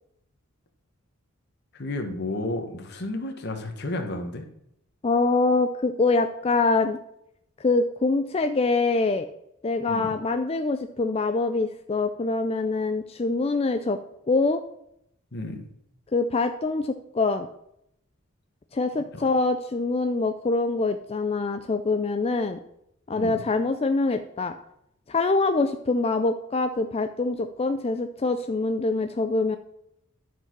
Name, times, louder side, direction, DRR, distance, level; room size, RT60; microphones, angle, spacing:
voice 1, 1.7-4.5 9.9-10.1 15.3-15.7 19.1-19.3 23.1-23.4, left 2 dB, 50° left, 4 dB, 1.2 m, -32 dB
voice 2, 5.0-7.0 7.6-9.3 9.6-14.0 14.3-14.6 16.1-17.5 18.7-22.6 23.1-24.5 25.1-29.6, left 3 dB, 30° left, 8 dB, 0.4 m, -24 dB
10.5 x 4.7 x 6.0 m, 0.76 s
head